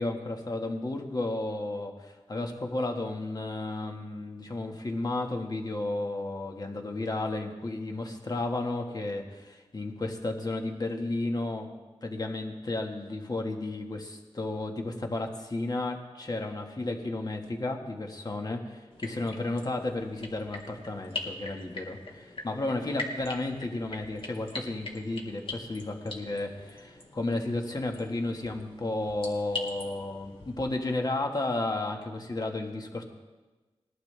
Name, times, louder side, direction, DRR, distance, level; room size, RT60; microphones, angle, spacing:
voice 1, 0.0-11.7 12.0-33.0, left 2 dB, 40° left, 3 dB, 1.5 m, -33 dB
sound 1, 18.9-30.7, left 2 dB, 55° left, 2.1 m, -42 dB
19.5 x 11.5 x 3.4 m, 1.2 s
wide cardioid pair, 80°, 11 cm